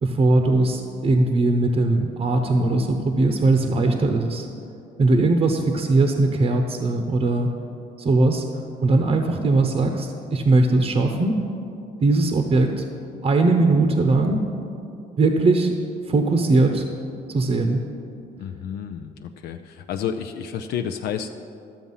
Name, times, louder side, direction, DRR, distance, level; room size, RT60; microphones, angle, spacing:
voice 1, 0.0-4.5 5.0-7.5 8.0-8.4 8.8-11.4 12.0-12.8 13.2-14.4 15.2-15.7 16.1-16.8 17.3-17.8, right 2 dB, 35° right, 4 dB, 0.9 m, -20 dB
voice 2, 18.4-21.3, left 8 dB, 75° left, 6 dB, 0.5 m, -30 dB
12.5 x 7.2 x 5.6 m, 2.7 s
cardioid pair, 110°, 17 cm